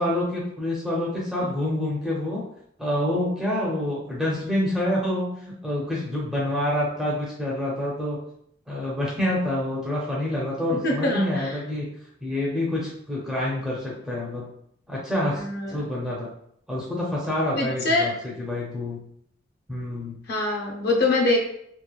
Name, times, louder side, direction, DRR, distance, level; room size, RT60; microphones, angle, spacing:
voice 1, 0.0-2.4 2.8-8.2 8.7-11.9 12.2-14.5 14.9-16.3 16.7-18.1 18.4-19.0 19.7-20.2, left 1 dB, ahead, -6 dB, 0.5 m, -27 dB
voice 2, 10.7-11.6 15.3-15.8 17.5-18.1 20.3-21.4, left 2 dB, 50° left, 1 dB, 0.5 m, -24 dB
3.0 x 2.1 x 2.3 m, 0.70 s
head